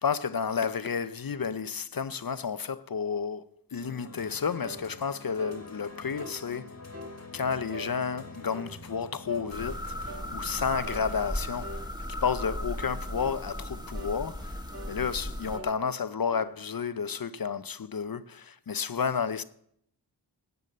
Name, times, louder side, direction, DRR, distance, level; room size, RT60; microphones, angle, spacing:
voice 1, 0.0-6.7 7.3-9.9 10.3-11.8 12.2-14.6 14.9-19.4, left 6 dB, 50° left, 0.7 m, -31 dB
sound 1, 3.8-12.1, left 3 dB, 35° left, 1.7 m, -47 dB
sound 2, 4.6-4.8 5.4-5.6 6.2-6.4 6.9-7.2 7.7-7.9 8.5-8.7 9.3-9.5 10.1-10.3 10.8-11.1 11.6-11.8 12.4-12.6 13.2-13.4 13.9-14.2 14.7-15.0 15.5-15.7 16.3-16.5, right 1 dB, 30° right, 2.3 m, -43 dB
sound 3, 9.5-15.6, left 1 dB, 10° right, 2.0 m, -36 dB
12.0 x 8.1 x 7.4 m
wide cardioid pair, 55°, 45 cm